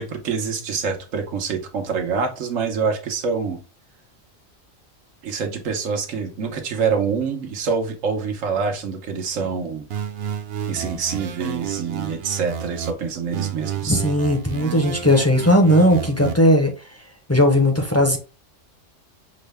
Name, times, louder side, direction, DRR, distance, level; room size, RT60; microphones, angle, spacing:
voice 1, 0.0-3.6 5.2-9.9 10.7-14.0, right 5 dB, 90° right, 4 dB, 1.2 m, -26 dB
sound 1, 9.9-12.9 13.3-16.3, right 8 dB, 60° right, 0.7 m, -31 dB
voice 2, 13.9-16.7 17.3-18.2, equal, 15° left, 3 dB, 0.5 m, -17 dB
6.3 x 2.1 x 3.3 m, 0.34 s
omnidirectional pair, 1.3 m